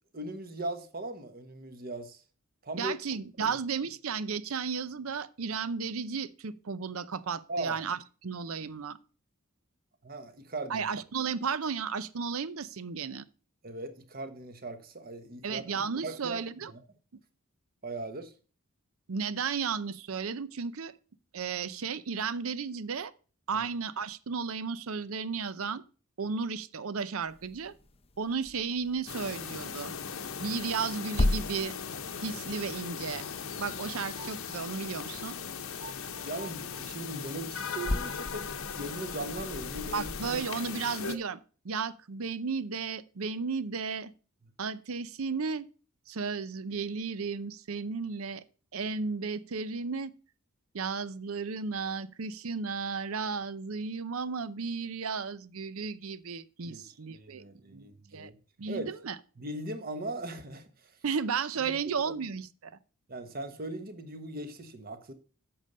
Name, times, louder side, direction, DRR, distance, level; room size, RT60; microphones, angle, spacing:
voice 1, 0.1-2.2 2.6-2.9 3.4-3.5 7.5-7.8 10.0-10.9 13.6-15.6 16.0-16.8 17.8-18.3 23.5-23.7 36.2-40.4 56.6-58.4 58.7-58.9 59.4-61.0 61.6-62.1 63.1-65.1, right 2 dB, 45° right, 1.3 m, -39 dB
voice 2, 2.7-9.0 10.7-13.2 15.4-16.7 19.1-20.9 21.3-23.1 23.5-25.8 26.2-27.7 28.2-29.9 30.4-31.7 32.2-33.2 33.6-35.3 39.9-41.4 41.6-44.1 44.6-45.6 46.1-48.4 48.7-50.1 50.7-57.4 57.7-57.8 58.1-58.3 58.6-59.2 61.0-62.7, right 5 dB, 70° right, 0.6 m, -34 dB
sound 1, 27.3-40.4, left 1 dB, 25° left, 0.6 m, -38 dB
sound 2, 29.1-41.2, left 6 dB, 70° left, 0.9 m, -38 dB
8.8 x 6.8 x 5.4 m
head